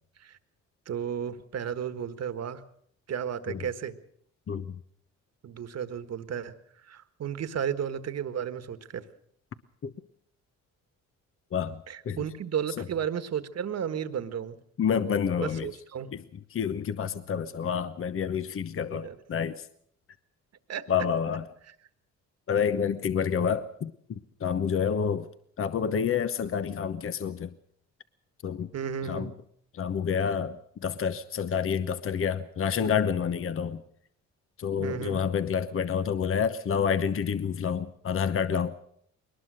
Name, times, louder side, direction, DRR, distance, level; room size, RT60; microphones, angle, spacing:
voice 1, 0.8-2.6 3.1-4.0 5.4-6.5 6.8-9.0 11.9-14.5 15.4-16.1 18.9-19.2 20.7-20.9 28.7-29.4 34.8-35.3, right 8 dB, 55° right, 1.6 m, -33 dB
voice 2, 11.5-12.2 14.8-15.7 16.1-16.2 16.5-19.6 20.9-21.4 22.5-25.3 25.6-27.5 28.4-28.7 29.1-29.3 29.7-33.8 34.6-38.8, left 7 dB, 45° left, 1.0 m, -28 dB
21.5 x 19.5 x 6.4 m
cardioid pair, 90°, 30 cm